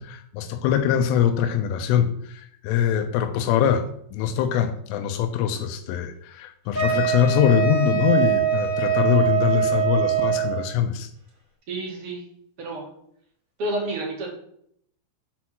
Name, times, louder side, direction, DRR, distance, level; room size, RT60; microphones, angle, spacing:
voice 1, 0.0-2.1 2.6-3.9 4.1-11.1, left 9 dB, 85° left, 7 dB, 3.5 m, -23 dB
Wind instrument woodwind instrument, 6.7-10.6, right 9 dB, 20° right, 3.4 m, -23 dB
voice 2, 11.7-12.2 12.6-12.9 13.6-14.3, right 1 dB, 45° right, -1 dB, 2.1 m, -29 dB
7.4 x 6.3 x 5.9 m, 0.69 s
omnidirectional pair, 5.6 m